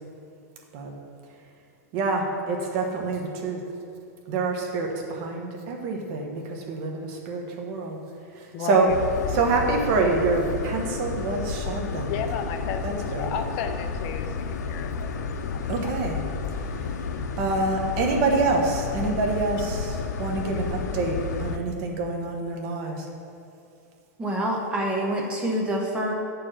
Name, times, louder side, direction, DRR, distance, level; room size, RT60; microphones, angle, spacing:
voice 1, 1.9-3.6 4.3-8.0 8.4-8.9 9.3-12.1 12.8-13.3 15.7-16.2 17.4-23.1, right 3 dB, 40° right, 1 dB, 1.2 m, -26 dB
voice 2, 8.5-9.0 12.1-16.0, left 7 dB, 35° left, 6 dB, 0.6 m, -34 dB
sound 1, 8.9-21.6, left 5 dB, 85° left, 0.7 m, -31 dB
voice 3, 24.2-26.1, right 1 dB, 10° right, -1 dB, 0.9 m, -26 dB
8.2 x 4.8 x 6.4 m, 2.7 s
supercardioid pair, 160°, 9 cm